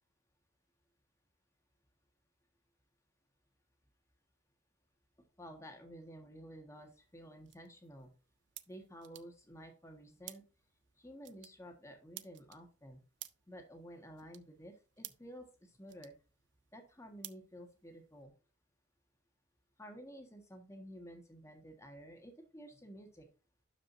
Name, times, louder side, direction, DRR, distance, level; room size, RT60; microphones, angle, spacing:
voice 1, 5.4-8.1 8.7-10.4 11.0-13.0 13.5-16.1 16.7-18.3 19.8-23.3, equal, 15° left, 4 dB, 1.6 m, -52 dB
sound 1, 6.7-18.2, right 15 dB, 60° right, 0.5 m, -56 dB
12.0 x 5.0 x 2.6 m, 0.34 s
head